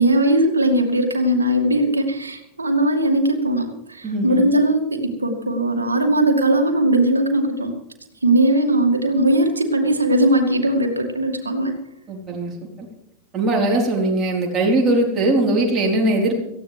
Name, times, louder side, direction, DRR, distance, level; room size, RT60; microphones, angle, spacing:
voice 1, 0.0-7.7 8.2-11.8, right 1 dB, 75° right, 3 dB, 2.3 m, -19 dB
voice 2, 4.0-4.5 12.1-12.5 13.3-16.4, right 2 dB, 25° right, -1 dB, 4.2 m, -20 dB
18.0 x 15.0 x 3.5 m, 0.84 s
figure-of-eight pair, 90°, 0 cm